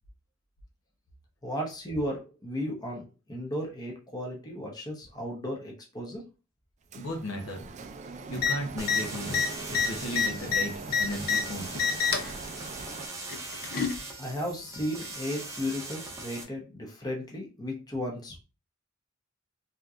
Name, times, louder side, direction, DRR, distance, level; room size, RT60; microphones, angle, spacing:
voice 1, 1.4-6.2 14.2-18.4, equal, 20° left, -1 dB, 0.8 m, -35 dB
voice 2, 6.9-7.6 8.3-11.8, equal, 80° left, 3 dB, 0.8 m, -36 dB
Printer, 6.9-13.1, right 4 dB, 35° right, 0.3 m, -42 dB
sound 1, 8.4-8.5 8.8-9.0 9.3-11.4 11.7-12.3 13.3-14.0 15.0-15.1, left 5 dB, 50° left, 0.5 m, -27 dB
sound 2, 8.8-16.4, right 2 dB, 15° right, 0.7 m, -41 dB
3.5 x 2.8 x 2.4 m, 0.32 s
head